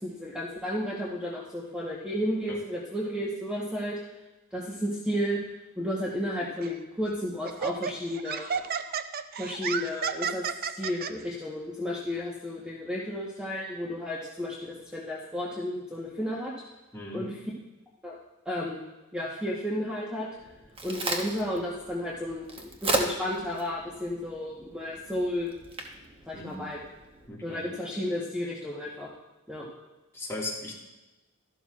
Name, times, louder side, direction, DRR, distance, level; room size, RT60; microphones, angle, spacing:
voice 1, 0.0-4.0 4.5-5.4 5.8-8.6 9.4-10.4 10.8-16.5 17.1-17.3 18.0-18.2 18.4-18.8 19.1-20.3 20.8-25.5 26.3-26.8 27.4-29.1 29.5-29.7, left 1 dB, 5° right, -5 dB, 1.1 m, -32 dB
Laughter, 6.6-6.8 7.4-11.1, right 6 dB, 45° right, 0.5 m, -32 dB
voice 2, 16.9-17.3 26.3-26.7 27.3-27.7 30.1-30.8, left 2 dB, 10° left, -4 dB, 1.9 m, -38 dB
Crack, 20.4-27.3, right 2 dB, 25° right, 1.1 m, -36 dB
13.0 x 12.0 x 2.4 m, 1.1 s
head